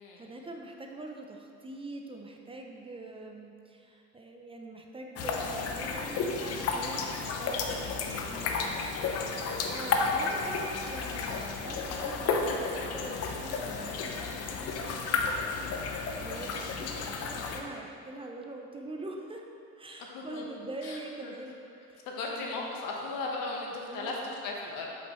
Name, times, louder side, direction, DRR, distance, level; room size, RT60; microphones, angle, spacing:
voice 1, 0.2-9.0 9.7-15.7 16.2-19.4 19.8-21.6 21.9-22.8 23.7-24.3, right 2 dB, 15° right, 1 dB, 0.5 m, -44 dB
sound 1, 5.2-17.6, left 4 dB, 45° left, 0.7 m, -32 dB
voice 2, 9.0-9.3 20.1-20.4 20.8-21.0 21.2-21.3 22.1-24.9, left 3 dB, 80° left, -1 dB, 1.2 m, -36 dB
7.4 x 5.7 x 3.1 m, 2.5 s
cardioid pair, 105°, 33 cm